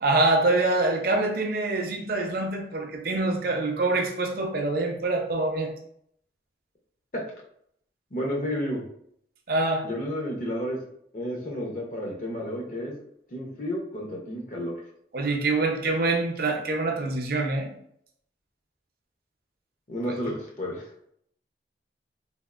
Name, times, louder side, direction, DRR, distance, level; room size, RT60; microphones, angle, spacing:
voice 1, 0.0-5.7 9.5-9.8 15.1-17.7, right 2 dB, 55° right, 2 dB, 0.5 m, -25 dB
voice 2, 8.1-8.8 9.8-10.8 11.1-13.0 13.3-14.8 19.9-20.9, equal, 45° left, -2 dB, 0.6 m, -31 dB
3.4 x 2.4 x 2.4 m, 0.69 s
head